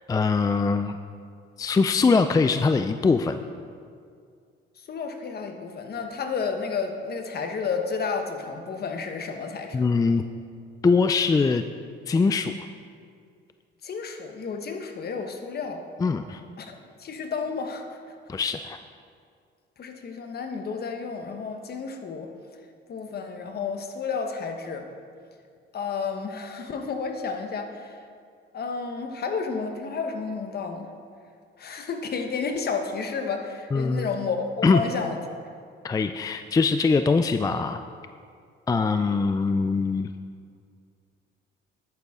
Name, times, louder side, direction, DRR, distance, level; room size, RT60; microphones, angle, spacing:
voice 1, 0.1-1.0 1.6-3.4 9.7-10.2 10.8-11.6 12.1-12.5 16.0-16.4 18.3-18.8 33.7-34.1 34.6-34.8 35.8-37.8 38.7-40.1, left 4 dB, 20° left, 9 dB, 0.3 m, -22 dB
voice 2, 4.9-9.8 13.8-15.8 16.6-17.8 19.8-22.3 22.9-24.9 25.7-28.0 28.5-30.8 31.6-35.2, left 5 dB, 55° left, 5 dB, 1.1 m, -31 dB
10.5 x 9.0 x 3.6 m, 2.2 s
cardioid pair, 90°, 20 cm